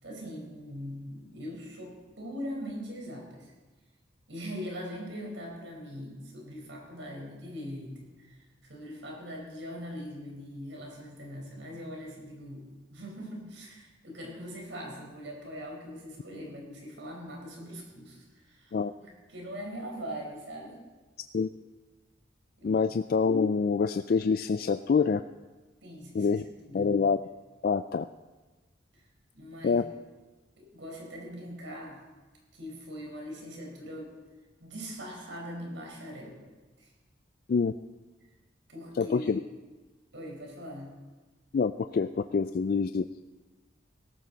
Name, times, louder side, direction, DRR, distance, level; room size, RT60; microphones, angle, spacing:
voice 1, 0.0-3.5 4.3-20.8 22.6-22.9 25.8-26.3 26.7-27.0 28.9-29.0 29.3-29.8 30.6-32.0 32.5-34.1 34.6-36.4 36.8-36.9 38.7-39.4 40.1-40.9, equal, 75° right, 0 dB, 4.4 m, -41 dB
voice 2, 22.6-25.2 26.1-26.4 26.7-27.2 27.6-28.1 29.6-29.8 37.5-37.7 39.0-39.4 41.5-43.0, left 5 dB, 50° left, 10 dB, 0.3 m, -26 dB
17.5 x 14.0 x 4.0 m, 1.2 s
head